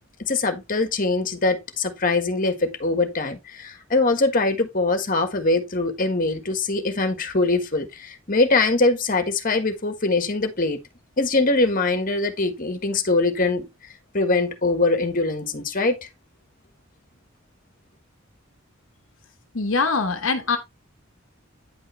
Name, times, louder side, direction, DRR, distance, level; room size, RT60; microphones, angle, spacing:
voice 1, 0.2-10.8 11.2-13.6 14.1-16.1, left 3 dB, 45° left, 1.5 m, -22 dB
voice 2, 19.5-20.6, left 4 dB, 70° left, 1.1 m, -23 dB
9.8 x 5.5 x 3.3 m
head